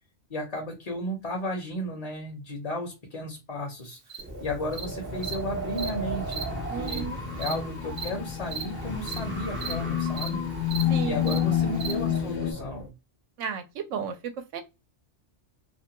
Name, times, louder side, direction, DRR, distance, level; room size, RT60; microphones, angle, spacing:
voice 1, 0.3-4.0 4.4-7.0 7.4-10.4 11.0-12.9, left 1 dB, 40° left, 0.7 m, -34 dB
Cricket, 4.1-4.2 4.7-4.8 5.2-5.3 5.8-5.9 6.3-6.4 6.9-7.0 7.4-7.5 8.0-8.1 8.5-8.6 9.1-9.2 9.6-9.7 10.2-10.3 10.7-10.8 11.3-11.4 11.8-11.9, right 8 dB, 60° right, 0.6 m, -35 dB
Wind, 4.2-12.9, right 1 dB, 20° right, 0.3 m, -36 dB
sound 1, 4.9-5.4 6.1-12.5, left 11 dB, 80° left, 1.0 m, -30 dB
voice 2, 6.7-7.2 10.9-11.4 13.4-14.6, right 7 dB, 80° right, 0.9 m, -33 dB
2.5 x 2.2 x 2.8 m
omnidirectional pair, 1.3 m